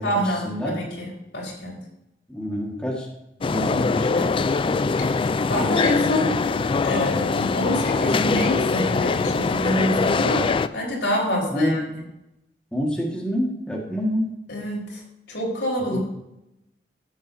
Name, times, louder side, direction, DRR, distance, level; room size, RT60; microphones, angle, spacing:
voice 1, 0.0-1.8 5.5-6.3 6.8-10.5 10.7-11.8 14.5-15.0 15.3-16.0, equal, 85° left, -4 dB, 4.0 m, -26 dB
voice 2, 2.3-3.1 3.5-4.3 11.5-11.7 12.7-14.3 15.9-16.0, equal, 5° left, -2 dB, 1.6 m, -27 dB
sound 1, 3.4-10.7, left 4 dB, 30° left, 0.3 m, -22 dB
13.5 x 7.5 x 2.7 m, 0.87 s
head